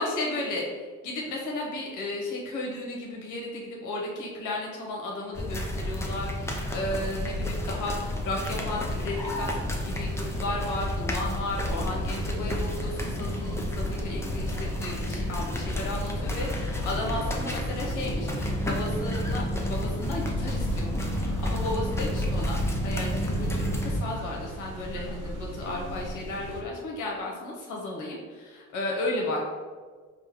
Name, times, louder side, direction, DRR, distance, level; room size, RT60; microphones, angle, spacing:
voice 1, 0.0-29.4, left 2 dB, 85° left, -2 dB, 1.0 m, -34 dB
sound 1, 5.3-24.0, equal, 10° left, 0.6 m, -30 dB
sound 2, 8.4-26.6, right 1 dB, 85° right, 0.7 m, -40 dB
5.2 x 2.2 x 3.0 m, 1.5 s
cardioid pair, 90°, 30 cm